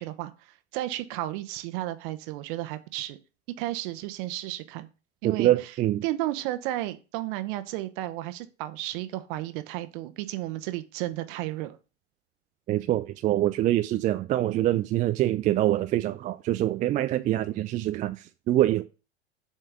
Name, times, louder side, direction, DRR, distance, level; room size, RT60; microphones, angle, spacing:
voice 1, 0.0-3.2 3.6-4.9 5.2-5.5 6.0-11.8, right 15 dB, 50° right, 1.1 m, -33 dB
voice 2, 5.2-6.0 12.7-18.8, right 14 dB, 25° right, 0.4 m, -25 dB
7.4 x 4.4 x 6.9 m
figure-of-eight pair, 90°, 34 cm